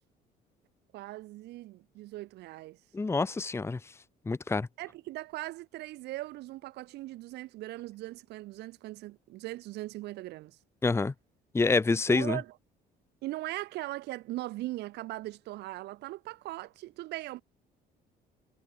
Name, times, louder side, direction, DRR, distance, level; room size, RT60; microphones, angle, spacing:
voice 1, 0.9-2.8 4.8-10.6 12.1-12.5 13.2-17.4, right 17 dB, 80° right, 2.3 m, -39 dB
voice 2, 2.9-3.8 4.3-4.7 10.8-11.1 11.5-12.4, left 3 dB, 15° left, 0.9 m, -27 dB
cardioid pair, 110°, 17 cm